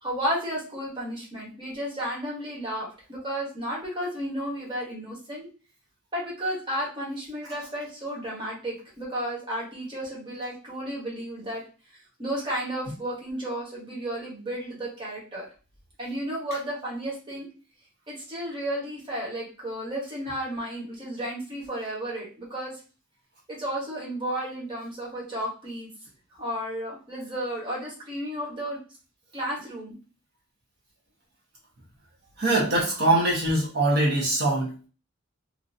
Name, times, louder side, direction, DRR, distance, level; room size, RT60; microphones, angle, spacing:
voice 1, 0.0-5.5 6.1-11.6 12.2-15.5 16.0-17.5 18.1-22.8 23.5-25.9 26.4-28.8 29.3-29.9, equal, 25° right, -5 dB, 1.3 m, -33 dB
voice 2, 32.4-34.9, right 2 dB, 50° right, -3 dB, 1.2 m, -23 dB
2.9 x 2.7 x 2.7 m, 0.35 s
head